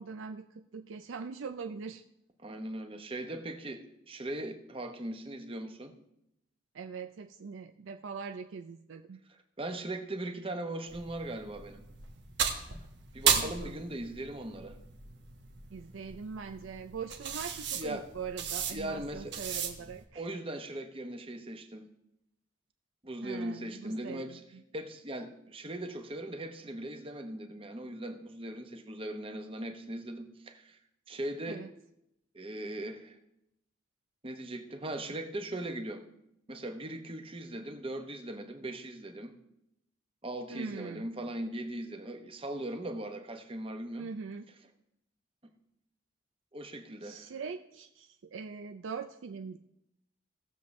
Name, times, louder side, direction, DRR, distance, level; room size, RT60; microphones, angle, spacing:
voice 1, 0.0-2.0 6.7-9.2 13.4-13.7 15.7-20.3 23.2-24.6 31.5-31.7 40.5-41.1 44.0-44.5 47.0-49.6, right 5 dB, 85° right, 7 dB, 0.5 m, -42 dB
voice 2, 2.4-5.9 9.6-11.8 13.1-14.8 17.7-18.1 18.7-19.3 20.2-21.9 23.0-24.4 24.7-30.8 31.1-31.6 32.3-33.2 34.2-36.0 36.5-39.3 40.2-44.1 46.5-47.3, right 1 dB, 30° right, 6 dB, 0.9 m, -39 dB
sound 1, 10.9-20.0, right 7 dB, 65° right, 1.2 m, -35 dB
18.0 x 7.0 x 3.2 m, 0.82 s
head